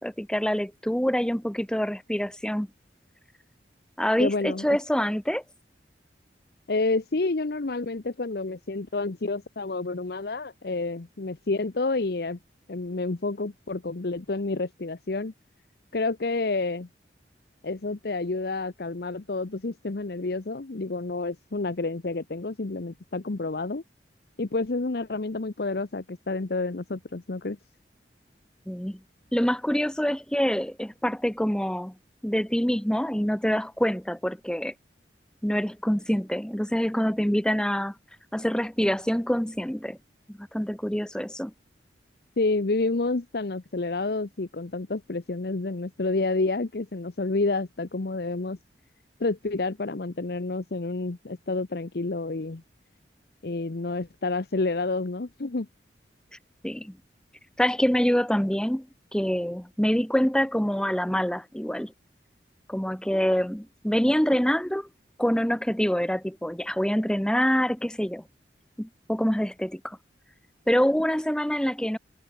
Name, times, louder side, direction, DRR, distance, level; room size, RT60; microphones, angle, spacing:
voice 1, 0.0-2.7 4.0-5.4 28.7-29.0 29.3-31.9 32.2-34.7 35.4-37.9 38.3-40.0 40.3-41.5 56.6-57.0 57.6-58.9 59.1-61.9 62.7-64.9 65.2-68.2 68.8-70.0 70.7-72.0, equal, 5° left, 1.0 m, -26 dB
voice 2, 4.2-4.8 6.7-12.4 12.7-15.3 15.9-16.9 17.6-23.8 24.4-27.6 42.4-48.6 49.2-52.6 53.4-55.7, left 3 dB, 60° left, 0.8 m, -29 dB
head